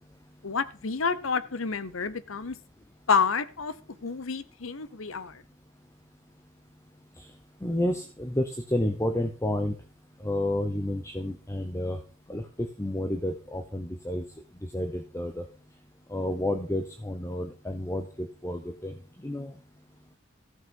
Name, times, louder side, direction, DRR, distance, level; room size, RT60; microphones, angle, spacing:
voice 1, 0.4-2.6 3.1-3.7 4.0-5.4, left 5 dB, 70° left, 0.9 m, -29 dB
voice 2, 7.6-9.7 10.2-12.0 12.3-14.2 14.7-15.4 16.1-18.9 19.2-19.5, left 1 dB, 15° left, 0.8 m, -30 dB
14.5 x 6.1 x 5.4 m
head